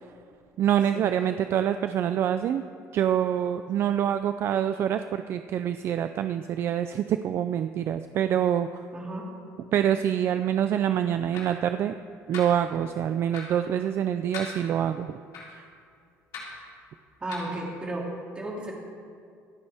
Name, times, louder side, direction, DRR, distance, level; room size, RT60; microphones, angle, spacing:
voice 1, 0.6-2.6 2.9-8.7 9.7-11.9 12.3-15.2, right 9 dB, 45° right, 9 dB, 0.4 m, -26 dB
voice 2, 8.9-9.3 17.2-18.7, right 1 dB, 20° right, -2 dB, 2.6 m, -34 dB
sound 1, 11.3-11.4 12.3-12.4 13.3-13.5 14.3-14.5 15.3-15.4 16.3-16.5 17.3-17.5, left 5 dB, 75° left, 3.4 m, -37 dB
25.5 x 9.5 x 3.5 m, 2.3 s
cardioid pair, 165°, 6 cm